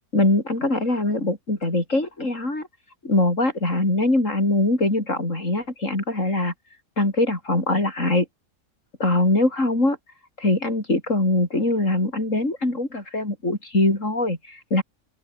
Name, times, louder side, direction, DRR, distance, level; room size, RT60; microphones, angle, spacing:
voice 1, 0.1-2.7 3.0-6.5 7.0-8.3 9.0-10.0 10.4-14.8, left 2 dB, 55° left, 6.9 m, -22 dB
open air
omnidirectional pair, 1.5 m